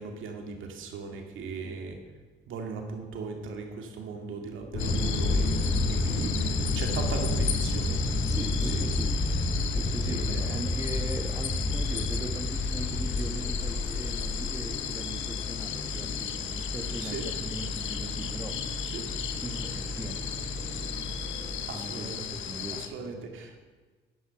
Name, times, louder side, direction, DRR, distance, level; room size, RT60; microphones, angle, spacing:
voice 1, 0.0-2.0 2.5-8.0 8.6-8.8 10.1-10.6 17.0-17.3 18.9-19.0 21.7-22.2 22.8-23.6, right 4 dB, 80° right, 3 dB, 2.3 m, -38 dB
sound 1, 4.7-21.6, left 1 dB, 45° left, 2.9 m, -31 dB
sound 2, 4.8-22.9, left 9 dB, 75° left, 1.1 m, -36 dB
voice 2, 6.0-6.4 8.3-9.2 9.7-18.6 19.4-21.1 21.7-22.8, right 1 dB, 15° right, 5 dB, 1.5 m, -40 dB
12.0 x 11.0 x 5.9 m, 1.3 s
cardioid pair, 90°, 20 cm